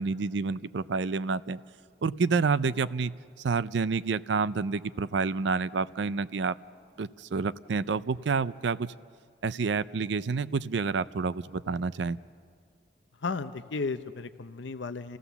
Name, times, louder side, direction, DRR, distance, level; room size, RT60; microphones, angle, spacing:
voice 1, 0.0-1.6 2.0-3.1 3.4-6.6 7.0-8.9 9.4-12.2, right 4 dB, 70° right, 16 dB, 0.5 m, -29 dB
voice 2, 13.2-15.2, left 4 dB, 80° left, 11 dB, 0.7 m, -34 dB
28.5 x 15.5 x 7.0 m, 2.1 s
head